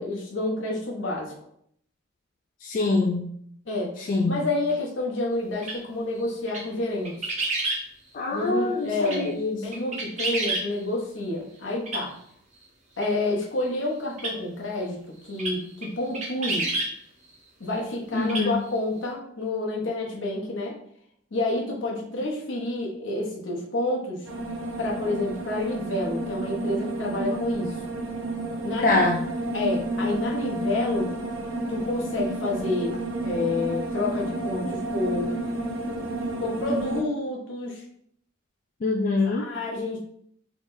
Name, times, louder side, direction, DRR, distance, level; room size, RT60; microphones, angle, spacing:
voice 1, 0.0-1.3 3.7-7.3 8.3-12.1 13.0-15.0 15.2-16.7 17.6-20.8 21.3-24.3 24.8-27.8 28.6-29.1 29.5-31.1 31.7-35.4 36.4-37.8 39.3-40.0, left 2 dB, 75° left, -2 dB, 0.9 m, -29 dB
voice 2, 2.6-3.3 4.0-4.4 8.1-9.8 18.1-18.6 28.8-29.2 38.8-39.5, left 3 dB, 45° left, 1 dB, 0.3 m, -24 dB
sound 1, 5.6-5.8 6.5-6.6 7.0-7.8 8.9-9.2 9.7-10.6 11.8-12.0 13.0-13.1 14.2-14.3 15.4-15.5 15.8-15.9 16.1-16.9 18.2-18.5 18.7-18.8, right 2 dB, 40° right, 0.7 m, -28 dB
sound 2, 24.2-37.0, right 1 dB, 90° right, 0.7 m, -31 dB
3.7 x 3.2 x 2.6 m, 0.68 s
head